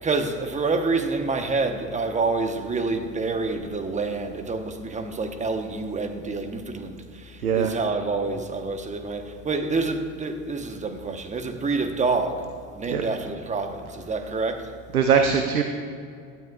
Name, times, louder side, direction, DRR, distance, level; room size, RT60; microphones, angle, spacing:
voice 1, 0.0-12.4 12.7-14.7, right 3 dB, 15° right, 1.1 m, -27 dB
voice 2, 7.4-7.8 12.9-13.0 14.9-15.6, right 7 dB, 90° right, 0.9 m, -21 dB
16.5 x 12.5 x 2.4 m
hypercardioid pair, 85°, 43 cm